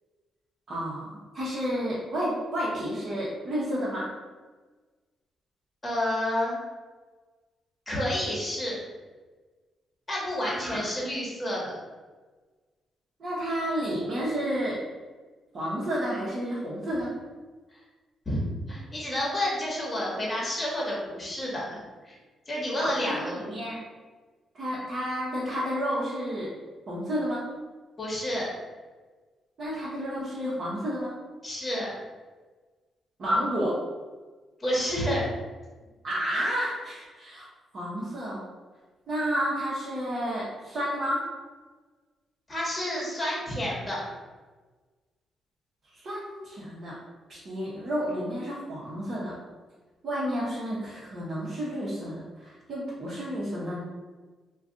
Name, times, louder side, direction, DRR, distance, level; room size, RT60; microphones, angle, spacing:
voice 1, 0.7-4.1 10.4-10.9 13.2-14.8 15.5-17.1 22.8-23.8 24.5-26.5 26.9-27.4 29.6-31.1 33.2-33.8 36.0-37.5 37.7-38.4 39.1-41.3 45.9-47.0 47.3-49.4 50.0-53.8, equal, 55° right, -9 dB, 0.9 m, -31 dB
voice 2, 5.8-6.6 7.9-8.8 10.1-11.7 18.3-18.4 18.7-22.2 22.5-23.4 28.0-28.5 31.4-31.9 34.6-35.3 42.5-44.0, left 1 dB, 20° left, -4 dB, 1.1 m, -29 dB
2.4 x 2.3 x 3.7 m, 1.3 s
cardioid pair, 100°, 0 cm